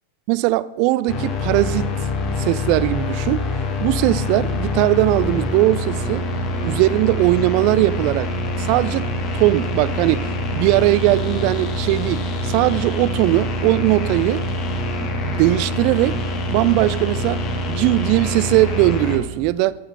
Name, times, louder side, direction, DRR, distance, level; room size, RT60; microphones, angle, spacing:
voice 1, 0.3-1.9 2.4-3.4 3.8-6.3 6.6-8.3 8.6-9.1 9.3-14.4 15.0-16.2 16.5-19.8, right 17 dB, 45° right, 0.3 m, -19 dB
sound 1, 1.1-19.2, left 1 dB, 35° left, 1.3 m, -25 dB
14.0 x 5.7 x 5.5 m
figure-of-eight pair, 90°, 0 cm